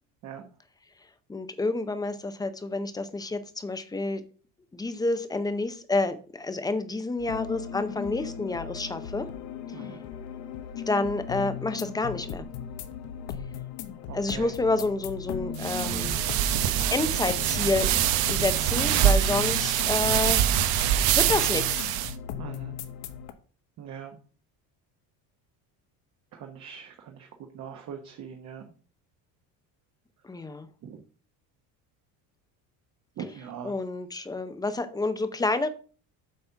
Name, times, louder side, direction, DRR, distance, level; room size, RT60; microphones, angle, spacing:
voice 1, 1.3-4.2 4.7-9.3 10.9-12.5 14.1-16.2 16.9-17.9 18.3-20.4 21.2-21.9 30.2-30.7 33.6-35.7, left 3 dB, 10° left, 10 dB, 0.6 m, -29 dB
sound 1, 7.2-23.3, left 8 dB, 75° left, 1.0 m, -37 dB
voice 2, 9.7-10.0 14.1-14.5 22.4-22.7 23.8-24.2 26.3-27.3 27.5-28.6 30.8-31.0 33.2-33.7, right 7 dB, 45° right, 3 dB, 1.1 m, -41 dB
sound 2, 15.6-22.1, right 11 dB, 75° right, 0.8 m, -24 dB
8.0 x 4.1 x 5.7 m, 0.39 s
cardioid pair, 150°, 38 cm